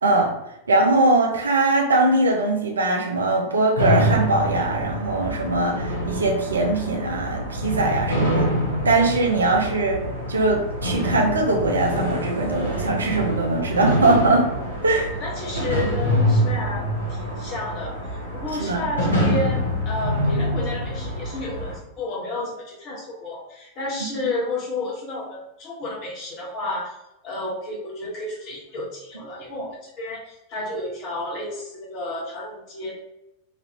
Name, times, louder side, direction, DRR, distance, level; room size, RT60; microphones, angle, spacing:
voice 1, 0.0-0.3 0.7-8.5 8.8-10.0 10.3-14.5 14.8-15.1 18.6-18.9, right 2 dB, 75° right, 1 dB, 0.6 m, -21 dB
sound 1, 3.8-21.8, equal, 85° left, 1.0 m, -25 dB
voice 2, 14.9-18.0 18.3-26.9 27.2-32.9, left 2 dB, 40° left, -4 dB, 1.3 m, -31 dB
3.0 x 2.5 x 2.9 m, 0.88 s
figure-of-eight pair, 90°, 0 cm